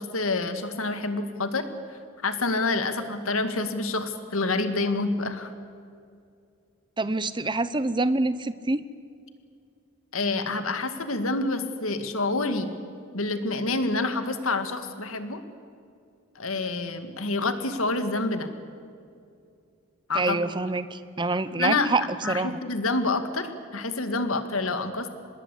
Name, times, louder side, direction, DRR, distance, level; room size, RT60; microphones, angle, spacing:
voice 1, 0.0-1.6 1.9-5.5 10.1-12.7 13.1-15.4 16.4-18.5 20.1-20.4 21.6-21.9 22.2-25.1, left 3 dB, 75° left, 9 dB, 2.0 m, -27 dB
voice 2, 7.0-8.8 20.1-22.6, right 2 dB, 20° right, 14 dB, 0.8 m, -26 dB
26.0 x 20.5 x 8.4 m, 2.3 s
head